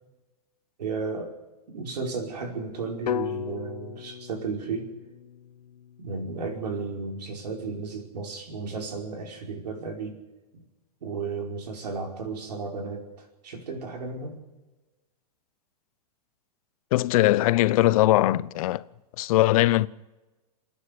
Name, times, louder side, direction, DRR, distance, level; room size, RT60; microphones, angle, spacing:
voice 1, 0.8-1.3 1.7-4.9 6.0-10.2 10.5-10.6 11.0-14.4, right 4 dB, 85° right, 5.1 m, -34 dB
sound 1, 3.1-7.1, left 9 dB, 90° left, 0.9 m, -36 dB
voice 2, 16.9-18.8 19.2-19.9, left 16 dB, 60° left, 0.8 m, -20 dB
27.0 x 9.9 x 9.7 m
hypercardioid pair, 120°, 20 cm